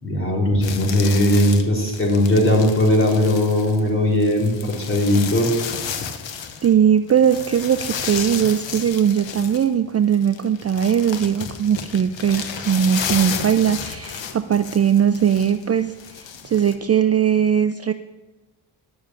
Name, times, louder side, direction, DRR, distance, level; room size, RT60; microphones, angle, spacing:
voice 1, 0.0-5.5, left 1 dB, 25° left, -2 dB, 3.7 m, -18 dB
sound 1, 0.6-6.7 7.1-16.8, left 7 dB, 75° left, 1.1 m, -32 dB
voice 2, 6.6-17.9, right 8 dB, 35° right, 10 dB, 0.4 m, -19 dB
11.0 x 7.1 x 7.5 m, 1.1 s
cardioid pair, 100°, 46 cm